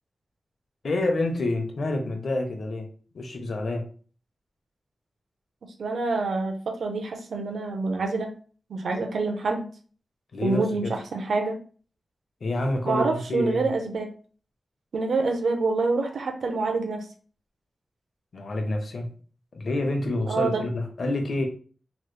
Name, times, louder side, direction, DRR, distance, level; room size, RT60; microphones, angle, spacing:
voice 1, 0.8-2.9 3.1-3.8 10.3-10.9 12.4-13.7 18.3-19.1 19.5-21.5, left 2 dB, 65° left, 4 dB, 0.7 m, -28 dB
voice 2, 5.8-8.3 8.7-9.6 10.4-11.6 12.8-14.1 14.9-17.1 20.3-20.6, right 3 dB, 90° right, 4 dB, 0.6 m, -26 dB
3.1 x 3.0 x 2.2 m, 0.41 s
wide cardioid pair, 110°, 0 cm